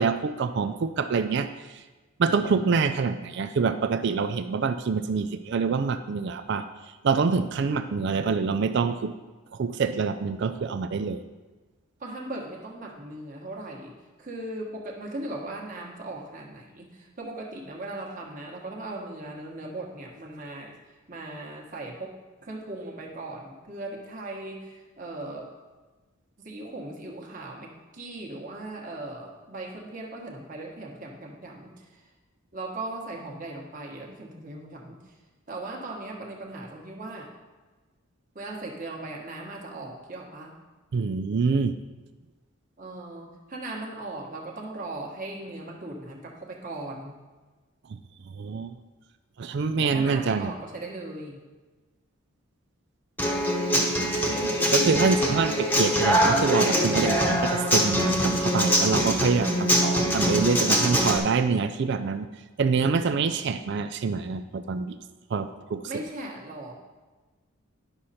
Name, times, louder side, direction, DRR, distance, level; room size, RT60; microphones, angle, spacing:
voice 1, 0.0-1.8 2.2-6.7 7.0-9.1 9.5-11.2 40.9-41.8 47.9-48.0 48.4-48.7 49.4-50.5 54.4-62.3 62.6-65.0 65.3-65.8, right 5 dB, 55° right, 10 dB, 0.4 m, -26 dB
voice 2, 12.0-13.9 14.2-25.5 26.4-32.1 32.5-35.2 35.5-37.3 38.3-40.5 42.8-47.1 49.8-51.4 65.9-66.7, right 2 dB, 40° right, -1 dB, 1.4 m, -38 dB
Human voice / Acoustic guitar, 53.2-61.2, equal, 10° left, 1.0 m, -23 dB
10.5 x 6.4 x 4.2 m, 1.3 s
head